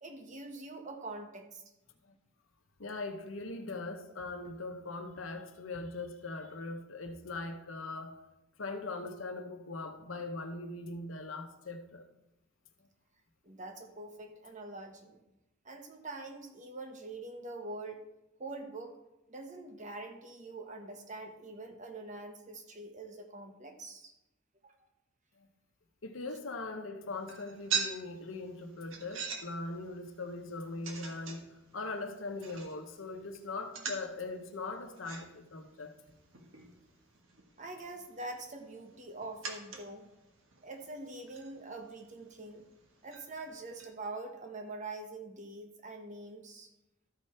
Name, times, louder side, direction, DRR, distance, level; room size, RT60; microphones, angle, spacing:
voice 1, 0.0-1.6 13.4-15.2 15.6-18.1 18.4-19.0 19.3-24.1 24.6-24.7 37.6-40.1 40.6-42.6 43.0-46.7, right 2 dB, 40° right, 1.1 m, -44 dB
voice 2, 2.8-8.2 8.6-12.0 25.4-25.5 26.0-31.4 31.7-35.9, left 3 dB, 80° left, 1.0 m, -40 dB
sound 1, 27.1-43.9, right 5 dB, 80° right, 1.3 m, -44 dB
13.0 x 5.0 x 4.3 m
head